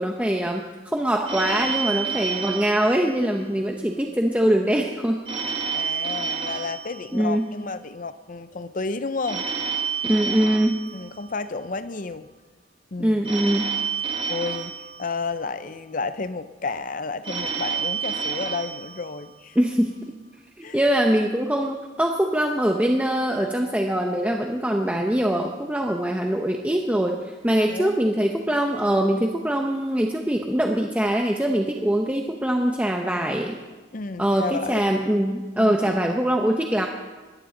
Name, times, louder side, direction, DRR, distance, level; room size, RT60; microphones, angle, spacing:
voice 1, 0.0-5.2 7.1-7.5 10.0-10.8 13.0-13.7 19.6-19.9 20.6-33.6 34.2-36.9, right 1 dB, 5° right, 2 dB, 0.7 m, -23 dB
Telephone, 1.3-3.8 5.3-7.7 9.3-11.7 13.2-15.7 17.2-19.7, right 6 dB, 30° right, 1.4 m, -30 dB
voice 2, 5.7-9.4 10.9-12.3 12.9-13.3 14.3-14.7 15.0-19.6 20.6-20.8 27.7-27.9 33.9-34.9 35.6-36.2, left 4 dB, 40° left, 12 dB, 0.6 m, -31 dB
21.0 x 15.0 x 3.9 m, 1.3 s
head